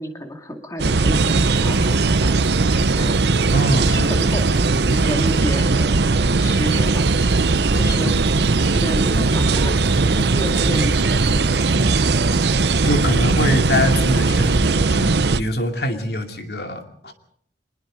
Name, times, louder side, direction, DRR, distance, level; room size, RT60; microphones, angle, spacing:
voice 1, 0.0-3.2 3.8-8.3 8.7-11.5, equal, 20° left, 4 dB, 2.3 m, -31 dB
sound 1, 0.8-15.4, right 3 dB, 70° right, 0.8 m, -18 dB
sound 2, 1.1-14.7, right 1 dB, 30° right, 1.5 m, -36 dB
voice 2, 3.5-4.0 8.0-8.2 12.8-17.1, equal, 60° left, 5 dB, 2.6 m, -23 dB
24.5 x 21.0 x 5.1 m, 0.64 s
head